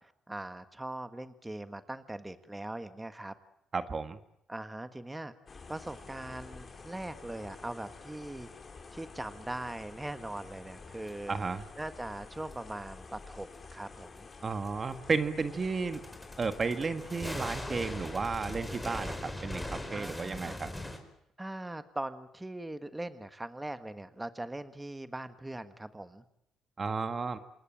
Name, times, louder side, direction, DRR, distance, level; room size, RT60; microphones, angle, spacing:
voice 1, 0.0-3.3 4.5-5.3 5.7-8.5 8.9-11.4 11.8-14.3 19.9-20.6 21.4-26.2, right 1 dB, 10° right, 9 dB, 1.6 m, -41 dB
voice 2, 3.7-4.2 11.3-11.6 14.4-16.0 16.4-20.7 26.8-27.4, right 4 dB, 35° right, 9 dB, 1.6 m, -33 dB
sound 1, 5.5-18.6, left 4 dB, 35° left, 4.9 m, -49 dB
sound 2, 11.1-11.2 12.5-12.6 14.7-14.8 15.4-21.0, left 1 dB, 10° left, 5.0 m, -40 dB
28.0 x 20.0 x 9.1 m, 0.79 s
cardioid pair, 90°, 0 cm